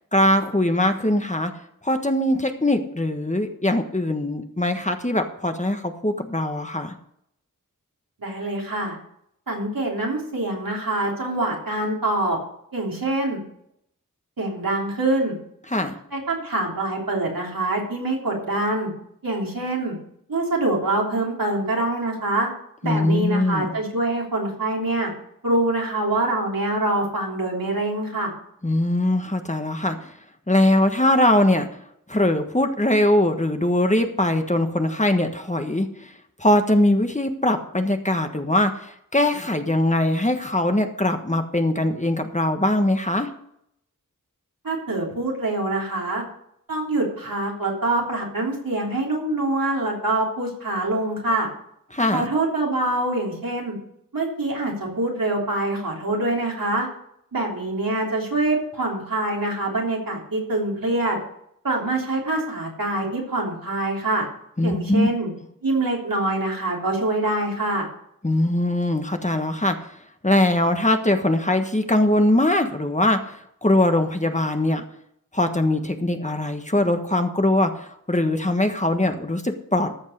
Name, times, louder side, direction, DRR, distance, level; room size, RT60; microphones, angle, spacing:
voice 1, 0.1-1.5 1.8-6.9 15.7-16.0 22.8-23.7 28.6-30.1 30.5-31.7 32.1-36.1 36.4-43.3 51.9-52.3 64.6-65.1 68.2-70.0 70.2-74.8 75.3-79.9, left 1 dB, 20° left, 6 dB, 1.3 m, -21 dB
voice 2, 8.2-9.0 9.5-12.4 12.7-13.4 14.4-15.3 16.1-18.9 19.2-19.9 20.3-22.5 22.8-25.1 25.4-28.3 44.6-46.2 46.7-51.5 52.1-53.8 54.1-56.9 57.3-61.2 61.6-64.3 64.6-65.3 65.6-67.9, right 2 dB, 80° right, -2 dB, 3.3 m, -25 dB
14.0 x 5.4 x 6.6 m, 0.72 s
wide cardioid pair, 45°, 34 cm